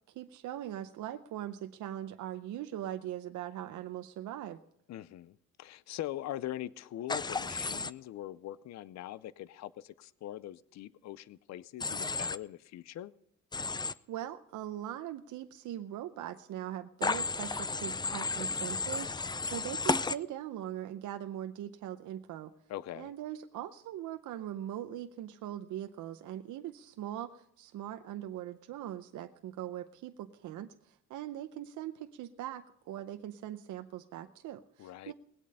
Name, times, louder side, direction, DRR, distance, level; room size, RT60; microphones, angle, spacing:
voice 1, 0.1-4.6 14.1-22.5 22.9-35.1, right 12 dB, 80° right, 0.7 m, -41 dB
voice 2, 4.9-13.1 22.7-23.1 34.8-35.1, left 13 dB, 60° left, 0.5 m, -42 dB
Human voice / Train, 7.1-7.9 11.8-12.4 13.5-13.9 17.0-20.2, left 4 dB, 15° left, 0.4 m, -33 dB
19.5 x 8.4 x 5.5 m
cardioid pair, 90°, 30 cm